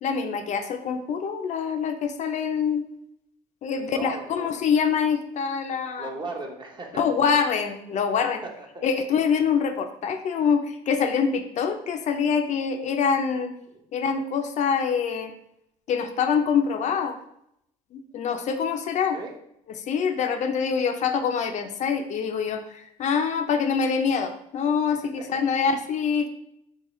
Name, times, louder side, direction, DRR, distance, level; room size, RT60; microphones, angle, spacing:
voice 1, 0.0-2.8 3.6-6.1 6.9-8.4 8.8-13.5 13.9-15.3 15.9-17.2 17.9-19.2 19.8-26.3, left 6 dB, 55° left, 6 dB, 0.5 m, -25 dB
voice 2, 3.7-4.5 6.0-7.0 8.4-8.9 19.1-19.3, right 2 dB, 30° right, 2 dB, 0.8 m, -36 dB
3.8 x 3.7 x 3.0 m, 0.76 s
cardioid pair, 100°, 15 cm